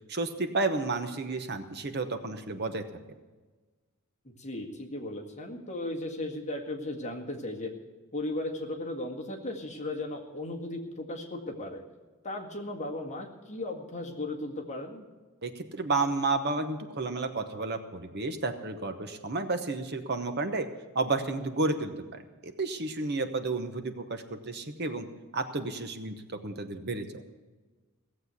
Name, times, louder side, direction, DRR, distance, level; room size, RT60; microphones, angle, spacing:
voice 1, 0.1-2.8 15.4-20.7 20.9-25.1 25.3-27.2, right 3 dB, 45° right, 7 dB, 1.0 m, -31 dB
voice 2, 4.2-7.7 8.1-11.8 12.2-15.0, left 1 dB, 30° left, 0 dB, 1.9 m, -36 dB
17.0 x 7.8 x 8.2 m, 1.3 s
head